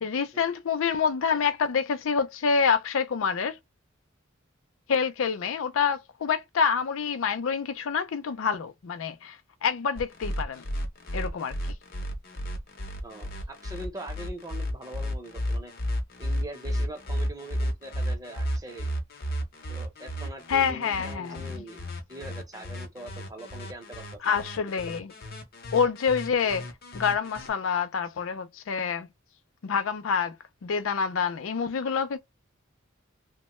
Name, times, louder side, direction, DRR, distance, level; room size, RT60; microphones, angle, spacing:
voice 1, 0.0-3.6 4.9-10.6 11.1-11.6 20.5-21.6 24.2-25.1 25.7-26.7 26.9-29.1 29.6-30.4 30.6-32.2, left 6 dB, 80° left, 0.4 m, -27 dB
sound 1, 10.0-27.5, equal, 50° left, 0.8 m, -33 dB
voice 2, 13.0-15.7 16.2-18.9 19.7-24.4, right 2 dB, 20° right, 0.7 m, -42 dB
3.0 x 2.2 x 3.0 m
head